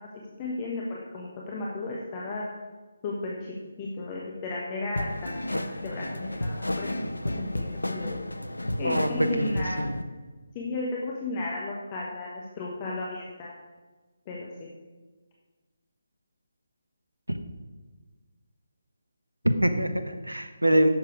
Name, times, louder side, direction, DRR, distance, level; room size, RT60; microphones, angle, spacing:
voice 1, 0.4-2.4 3.0-3.3 3.8-8.2 8.8-10.0 10.5-13.5 14.3-14.7, left 2 dB, 25° left, -3 dB, 1.3 m, -34 dB
sound 1, 5.0-10.0, left 1 dB, 75° left, 0.6 m, -32 dB
voice 2, 8.8-10.0 17.3-17.4 19.4-20.9, right 1 dB, 85° right, 9 dB, 1.1 m, -25 dB
11.0 x 7.4 x 4.8 m, 1.3 s
figure-of-eight pair, 150°, 0 cm